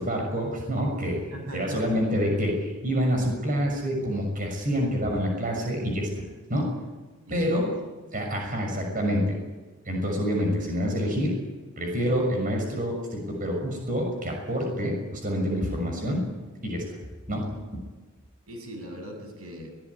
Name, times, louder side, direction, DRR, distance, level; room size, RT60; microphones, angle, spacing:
voice 1, 0.0-1.2 1.5-6.7 7.3-7.7 8.1-9.4 9.8-11.4 11.8-16.3 16.6-16.8 17.3-17.8, equal, 40° right, 2 dB, 6.4 m, -27 dB
voice 2, 1.3-2.0 7.3-7.6 18.5-19.7, right 1 dB, 85° right, 4 dB, 7.5 m, -39 dB
23.0 x 19.0 x 9.8 m, 1.3 s
head